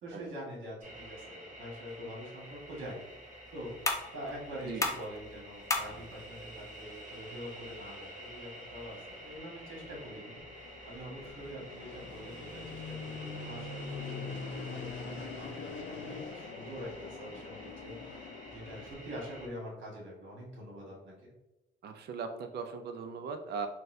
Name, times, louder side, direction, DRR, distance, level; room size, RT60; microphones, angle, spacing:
voice 1, 0.0-3.0 3.5-3.7 4.1-10.4 10.8-21.3, equal, 70° right, -3 dB, 1.4 m, -45 dB
sound 1, 0.8-19.5, equal, 40° right, 0.8 m, -49 dB
sound 2, 2.3-9.3, left 2 dB, 15° left, 0.4 m, -40 dB
Fixed-wing aircraft airplane, 8.7-18.9, left 4 dB, 75° left, 0.5 m, -44 dB
voice 2, 21.8-23.7, right 5 dB, 55° right, 7 dB, 0.4 m, -39 dB
3.9 x 2.1 x 2.6 m, 0.97 s
cardioid pair, 90°, 20 cm